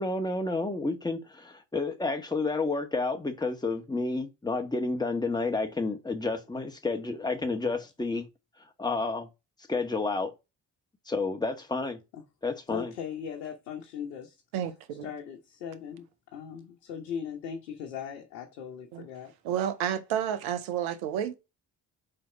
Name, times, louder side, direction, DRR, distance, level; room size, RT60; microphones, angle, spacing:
voice 1, 0.0-8.3 8.8-9.3 9.7-10.3 11.1-12.0 12.4-12.9, left 3 dB, 10° left, 1.5 m, -30 dB
voice 2, 12.7-14.4 15.0-16.1 16.3-19.3, left 8 dB, 75° left, 1.2 m, -39 dB
voice 3, 14.5-15.1 18.9-19.1 19.4-21.3, right 9 dB, 65° right, 1.1 m, -30 dB
5.1 x 4.2 x 5.7 m
figure-of-eight pair, 40°, 50 cm